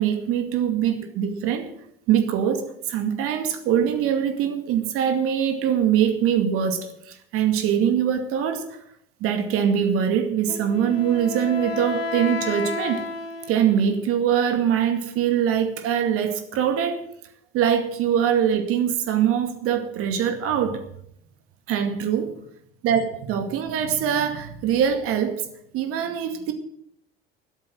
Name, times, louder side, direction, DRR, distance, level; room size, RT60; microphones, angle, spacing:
voice 1, 0.0-1.7 2.1-8.8 9.2-13.1 13.5-17.1 17.5-20.8 21.7-22.4 22.8-25.5 25.7-26.5, right 8 dB, 50° right, 2.3 m, -23 dB
Wind instrument woodwind instrument, 10.5-14.1, left 4 dB, 75° left, 1.5 m, -32 dB
13.5 x 12.5 x 6.2 m
figure-of-eight pair, 70°, 29 cm